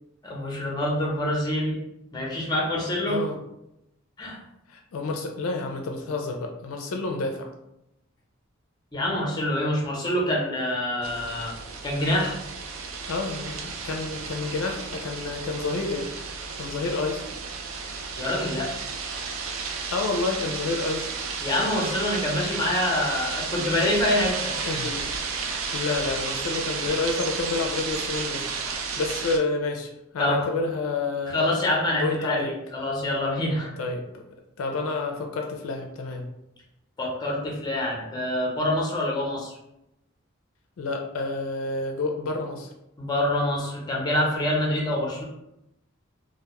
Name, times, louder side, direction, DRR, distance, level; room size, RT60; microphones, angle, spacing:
voice 1, 0.2-1.8 2.1-3.2 4.2-4.4 8.9-11.5 11.8-12.4 18.2-18.7 21.4-24.8 28.7-28.8 30.2-30.5 31.3-33.7 37.0-39.5 43.0-45.2, left 1 dB, 20° left, -2 dB, 0.6 m, -26 dB
voice 2, 4.7-7.5 13.1-16.1 16.6-17.2 19.9-21.3 24.7-25.2 25.7-31.5 31.9-32.5 33.8-34.2 34.6-36.3 40.8-42.7, left 3 dB, 80° left, 3 dB, 0.4 m, -29 dB
sound 1, 11.0-29.4, right 5 dB, 75° right, 0.3 m, -33 dB
2.2 x 2.1 x 2.9 m, 0.85 s
head